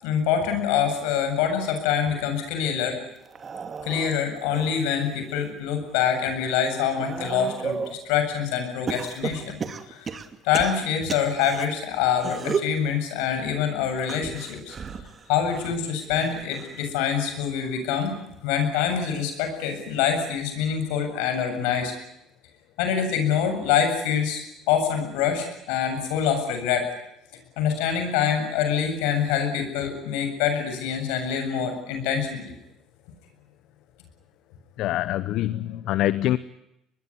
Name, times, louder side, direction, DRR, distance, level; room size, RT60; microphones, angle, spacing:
voice 1, 0.0-3.0 3.8-9.6 9.9-10.1 10.4-14.8 15.3-18.1 18.4-21.9 22.8-24.4 24.7-26.9 27.6-32.5, left 8 dB, 90° left, 6 dB, 7.6 m, -25 dB
sound 1, 3.2-5.5 6.0-8.0 8.9-11.7 12.2-12.8 14.0-16.9 17.2-17.6 18.8-18.9, right 5 dB, 35° right, 2.5 m, -34 dB
voice 2, 34.8-36.4, left 14 dB, 70° left, 15 dB, 0.9 m, -25 dB
24.0 x 21.0 x 10.0 m, 0.84 s
supercardioid pair, 100°, 0 cm